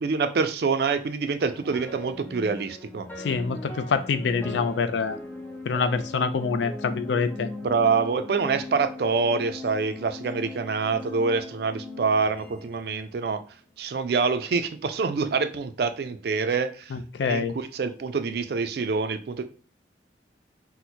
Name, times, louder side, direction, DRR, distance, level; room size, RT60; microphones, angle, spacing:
voice 1, 0.0-3.1 7.6-13.4 13.8-16.9 17.2-19.4, right 4 dB, 60° right, 10 dB, 0.3 m, -26 dB
sound 1, 1.4-13.7, left 2 dB, 10° left, 0.4 m, -39 dB
voice 2, 3.2-5.2 5.7-7.5 16.9-17.5, left 5 dB, 80° left, 11 dB, 0.4 m, -26 dB
4.2 x 2.1 x 2.8 m, 0.41 s
head